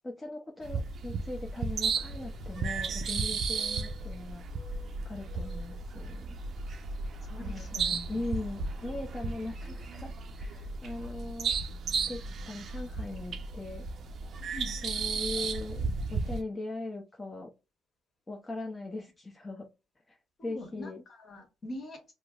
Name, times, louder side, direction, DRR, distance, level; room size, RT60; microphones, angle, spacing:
voice 1, 0.0-4.4 4.7-6.4 7.4-11.6 12.1-13.9 14.8-17.5 18.3-19.7 20.1-20.2 20.4-21.0, left 2 dB, 20° left, 0 dB, 0.6 m, -40 dB
sound 1, 0.6-16.4, right 4 dB, 60° right, 0.5 m, -34 dB
voice 2, 7.2-8.2 14.5-14.7 20.4-22.1, left 1 dB, 45° left, 3 dB, 1.3 m, -43 dB
4.9 x 2.0 x 2.3 m, 0.28 s
cardioid pair, 90°, 0 cm